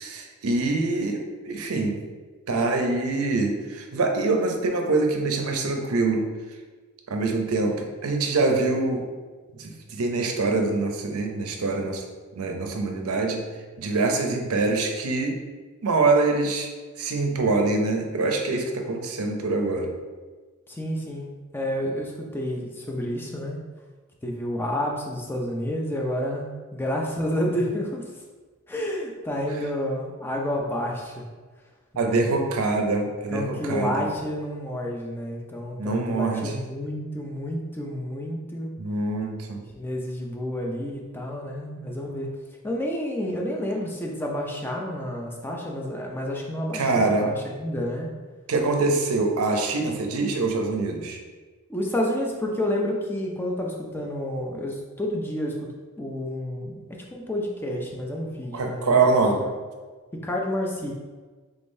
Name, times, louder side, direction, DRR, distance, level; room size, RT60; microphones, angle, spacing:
voice 1, 0.0-2.1 2.5-6.3 7.1-9.1 9.6-12.0 12.4-13.4 13.8-15.4 15.8-16.7 17.0-19.9 32.0-34.1 35.8-36.6 38.8-39.6 46.7-47.3 48.5-51.2 58.5-59.4, right 3 dB, 75° right, 4 dB, 0.5 m, -24 dB
voice 2, 20.7-23.6 24.2-28.2 28.7-31.3 31.9-32.2 33.3-38.7 39.8-42.3 42.6-48.1 51.7-55.7 56.0-56.8 57.1-59.0 59.3-59.5 60.1-60.9, left 1 dB, 10° left, -1 dB, 0.4 m, -30 dB
3.6 x 3.4 x 2.6 m, 1.4 s
head